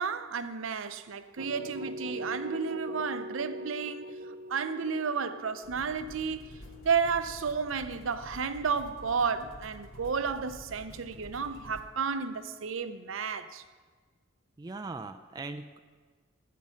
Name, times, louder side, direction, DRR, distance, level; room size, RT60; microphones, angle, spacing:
voice 1, 0.0-4.1 4.5-6.6 6.8-13.6, right 5 dB, 70° right, 0.6 m, -32 dB
sound 1, 1.4-7.2, right 1 dB, 35° right, 0.7 m, -41 dB
sound 2, 5.6-11.8, equal, 70° left, 1.4 m, -49 dB
voice 2, 14.6-15.8, right 3 dB, 20° right, 0.3 m, -40 dB
14.5 x 5.5 x 6.4 m
head